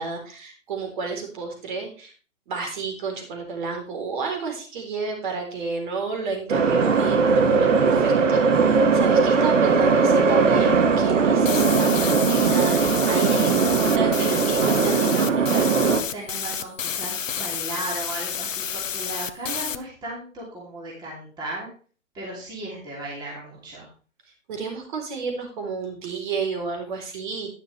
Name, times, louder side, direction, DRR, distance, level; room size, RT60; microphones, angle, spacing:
voice 1, 0.0-2.1 2.5-8.4 8.7-15.7 24.5-27.5, right 4 dB, 40° right, 3 dB, 3.8 m, -31 dB
sound 1, 6.5-16.0, right 5 dB, 70° right, 1.9 m, -19 dB
sound 2, 11.4-19.8, left 7 dB, 75° left, 1.2 m, -30 dB
voice 2, 16.1-21.7 22.1-23.9, right 2 dB, 10° right, -4 dB, 2.9 m, -36 dB
11.5 x 10.5 x 3.3 m, 0.39 s
hypercardioid pair, 150°, 39 cm